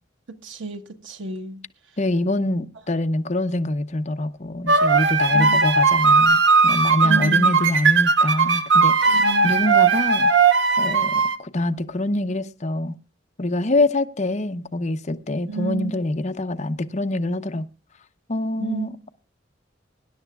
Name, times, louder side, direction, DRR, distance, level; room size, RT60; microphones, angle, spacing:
voice 1, 0.4-1.6 5.3-5.6 7.0-7.5 9.1-9.5 15.5-15.9 18.6-18.9, right 4 dB, 85° right, 1.3 m, -30 dB
voice 2, 2.0-10.3 10.8-13.0 13.4-17.6 18.3-19.1, left 2 dB, 35° left, 0.8 m, -25 dB
sound 1, 4.7-11.4, right 4 dB, 65° right, 0.9 m, -18 dB
24.0 x 11.0 x 2.3 m
head